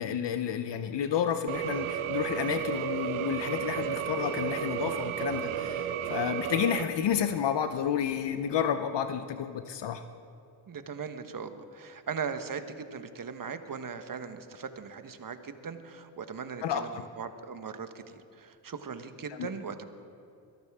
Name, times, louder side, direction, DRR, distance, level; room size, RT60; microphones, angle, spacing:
voice 1, 0.0-10.0 16.6-17.0 19.3-19.5, left 8 dB, 60° left, 9 dB, 0.8 m, -30 dB
sound 1, 1.5-6.8, right 10 dB, 80° right, 0.8 m, -33 dB
voice 2, 10.7-16.9 17.2-19.8, right 6 dB, 40° right, 9 dB, 1.3 m, -39 dB
22.5 x 12.0 x 3.7 m, 2.6 s
supercardioid pair, 55°, 49 cm